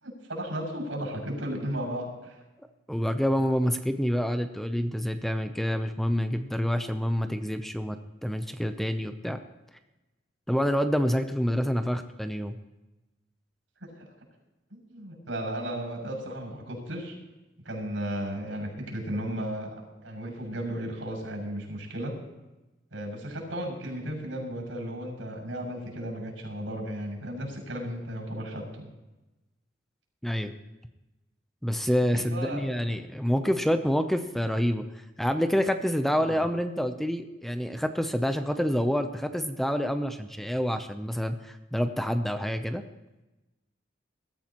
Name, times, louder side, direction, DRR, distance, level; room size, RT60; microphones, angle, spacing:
voice 1, 0.0-2.4 14.0-14.1 14.7-17.1 17.6-22.1 22.9-28.9 32.0-32.8 36.1-36.5, equal, 90° right, -1 dB, 6.5 m, -35 dB
voice 2, 2.9-9.4 10.5-12.5 30.2-30.5 31.6-34.8 35.2-42.8, equal, ahead, 8 dB, 0.6 m, -27 dB
21.5 x 13.5 x 3.0 m, 1.0 s
head